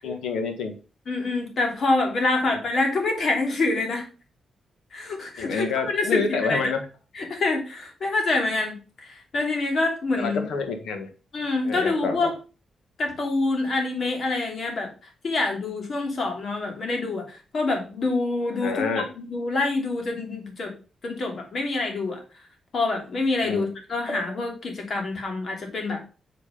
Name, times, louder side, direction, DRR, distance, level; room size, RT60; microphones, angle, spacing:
voice 1, 0.0-0.7 5.4-6.8 10.2-11.1 11.6-12.3 18.6-19.1 23.4-23.6, left 4 dB, 80° left, 6 dB, 1.6 m, -28 dB
voice 2, 1.1-4.1 4.9-6.7 7.1-10.5 11.3-12.3 13.0-14.9 15.2-20.7 21.0-22.2 22.7-26.0, left 3 dB, 60° left, 3 dB, 2.9 m, -26 dB
6.7 x 5.1 x 5.3 m, 0.34 s
cardioid pair, 60°, 0 cm